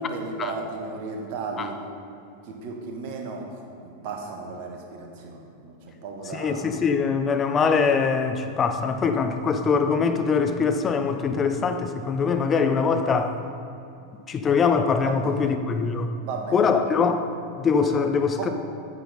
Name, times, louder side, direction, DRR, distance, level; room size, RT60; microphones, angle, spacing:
voice 1, 0.0-1.8 2.4-3.4 3.8-6.8 15.0-15.5 16.2-16.7 18.3-18.5, right 4 dB, 45° right, 1 dB, 1.4 m, -34 dB
voice 2, 6.3-13.4 14.3-16.1 16.5-17.2 17.6-18.5, left 5 dB, 25° left, 7 dB, 0.6 m, -23 dB
9.1 x 7.9 x 4.2 m, 2.7 s
figure-of-eight pair, 90°, 0 cm